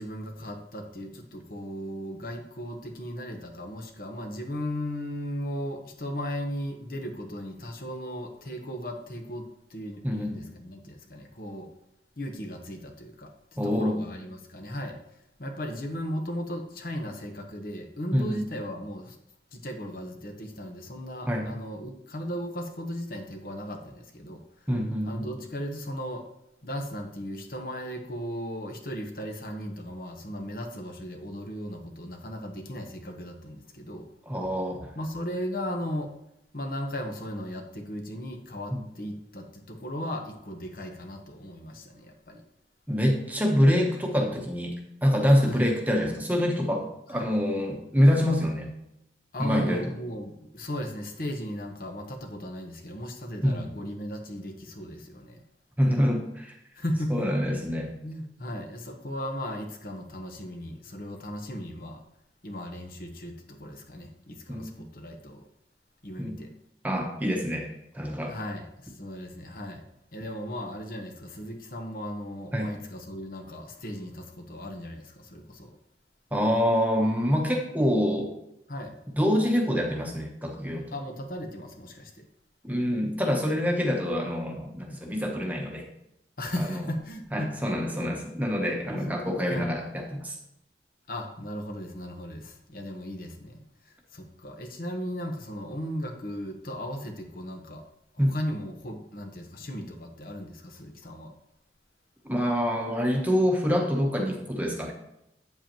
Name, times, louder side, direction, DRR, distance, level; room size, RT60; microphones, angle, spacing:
voice 1, 0.0-11.7 12.2-15.0 15.4-19.2 19.5-24.7 25.0-26.2 26.6-34.1 34.9-36.1 36.5-42.4 45.4-45.6 47.1-47.3 49.3-55.4 56.7-57.3 57.6-57.7 58.0-62.0 62.4-65.5 66.0-66.5 68.3-69.8 70.1-75.8 78.7-79.0 80.9-82.2 86.4-87.5 88.0-88.2 88.9-89.2 89.5-89.7 91.1-97.8 98.1-101.3, equal, 55° left, 3 dB, 1.1 m, -36 dB
voice 2, 10.0-10.4 13.6-14.0 18.1-18.5 21.3-21.5 24.7-25.3 34.3-34.9 38.7-38.8 42.9-44.7 45.0-48.7 49.4-49.8 53.4-53.7 55.8-56.5 57.1-57.9 64.5-64.7 66.2-66.4 66.8-67.7 67.9-68.4 72.5-72.7 76.3-78.3 79.2-80.9 82.6-85.8 86.6-86.8 87.3-90.4 98.2-98.3 102.2-104.9, equal, 10° right, 1 dB, 1.0 m, -26 dB
8.8 x 7.9 x 3.0 m, 0.85 s
head